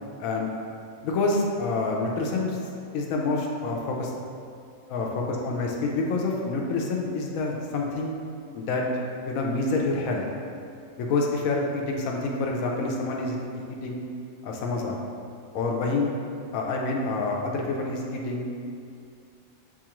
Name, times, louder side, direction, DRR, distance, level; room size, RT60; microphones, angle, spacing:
voice 1, 0.2-0.5 1.0-2.6 2.9-4.1 4.9-8.1 8.5-8.9 9.3-10.2 11.0-14.0 14.4-15.0 15.5-16.1 16.5-18.5, left 3 dB, 85° left, -1 dB, 1.0 m, -27 dB
6.9 x 2.4 x 2.9 m, 2.4 s
omnidirectional pair, 1.4 m